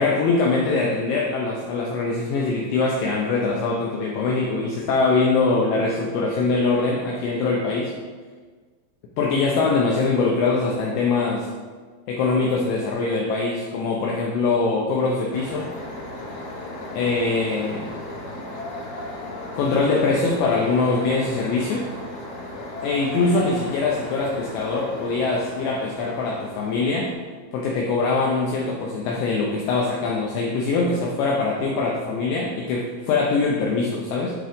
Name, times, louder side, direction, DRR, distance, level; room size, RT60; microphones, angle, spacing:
voice 1, 0.0-7.9 9.2-11.5 12.1-15.7 16.9-17.9 19.6-21.9 22.8-27.1 27.5-34.3, left 3 dB, 90° left, -2 dB, 2.5 m, -23 dB
sound 1, 15.3-27.1, left 1 dB, 55° left, 3.7 m, -35 dB
11.5 x 3.8 x 3.5 m, 1.5 s
omnidirectional pair, 6.0 m